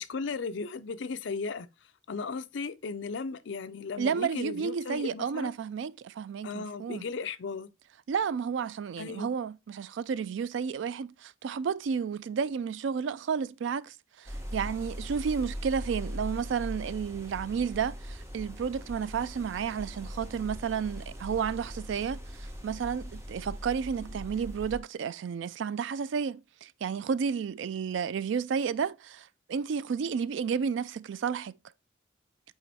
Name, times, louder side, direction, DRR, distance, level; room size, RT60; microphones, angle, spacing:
voice 1, 0.0-1.7 2.1-5.5 6.4-7.7 9.0-9.3, left 4 dB, 70° left, 0.5 m, -36 dB
voice 2, 4.0-7.0 8.1-31.5, right 6 dB, 70° right, 0.3 m, -32 dB
sound 1, 14.3-24.8, equal, 15° right, 1.1 m, -40 dB
8.6 x 3.0 x 4.1 m
head